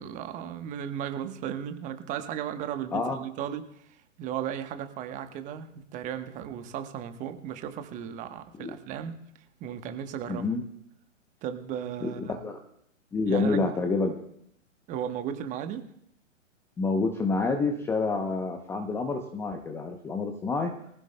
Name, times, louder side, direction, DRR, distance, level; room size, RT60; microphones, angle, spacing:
voice 1, 0.0-3.9 4.2-9.2 9.6-10.6 11.4-12.4 13.3-13.7 14.9-15.9, right 9 dB, 20° right, 8 dB, 1.1 m, -35 dB
voice 2, 10.3-10.6 12.0-12.6 13.1-14.2 16.8-20.7, left 3 dB, 5° left, 4 dB, 0.7 m, -28 dB
23.0 x 15.5 x 2.2 m, 0.72 s
figure-of-eight pair, 125°, 38 cm